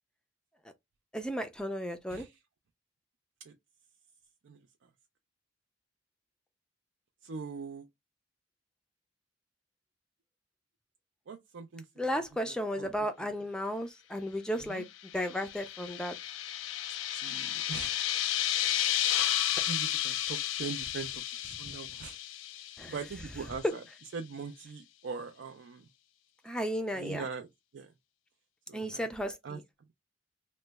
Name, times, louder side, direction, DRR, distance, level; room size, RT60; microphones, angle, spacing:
voice 1, 1.1-2.3 12.0-14.8 15.1-16.2 21.7-21.8 22.8-23.0 23.6-23.8 26.4-27.3 28.7-29.6, equal, 5° left, 0.3 m, -34 dB
voice 2, 7.2-7.8 11.3-11.8 12.8-12.9 14.7-14.8 17.2-18.0 19.1-19.4 19.7-21.2 21.6-22.2 22.9-23.8 24.1-25.8 26.9-27.5 27.7-27.9 28.7-29.0 29.4-29.6, right 5 dB, 80° right, 0.4 m, -41 dB
sound 1, 15.0-23.3, left 12 dB, 80° left, 0.4 m, -32 dB
3.0 x 2.1 x 3.3 m
head